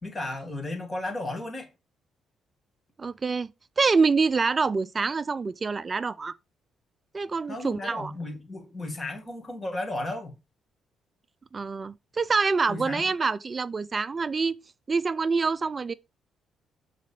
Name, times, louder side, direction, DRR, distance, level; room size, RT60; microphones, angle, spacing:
voice 1, 0.0-1.7 7.5-10.4 12.7-13.1, left 2 dB, 25° left, 2.8 m, -34 dB
voice 2, 3.0-3.5 3.8-6.4 7.1-8.1 11.5-14.6 14.9-15.9, right 4 dB, 35° right, 0.4 m, -26 dB
6.3 x 4.1 x 5.3 m
cardioid pair, 90°, 0 cm